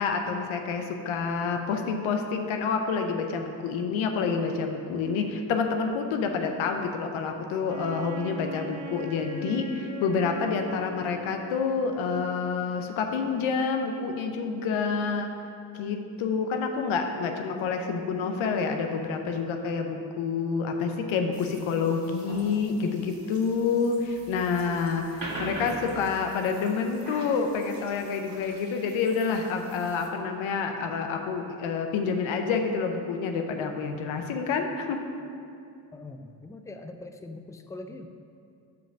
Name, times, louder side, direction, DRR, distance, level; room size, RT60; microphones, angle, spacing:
voice 1, 0.0-15.3 15.7-35.1, left 5 dB, 85° left, 5 dB, 0.7 m, -28 dB
Wind instrument woodwind instrument, 7.7-12.1, left 1 dB, 70° right, 1.1 m, -41 dB
sound 1, 21.3-30.1, right 1 dB, 45° right, 1.9 m, -43 dB
voice 2, 35.9-38.1, left 2 dB, 5° left, 6 dB, 0.5 m, -42 dB
5.7 x 5.1 x 6.2 m, 2.5 s
supercardioid pair, 45°, 47 cm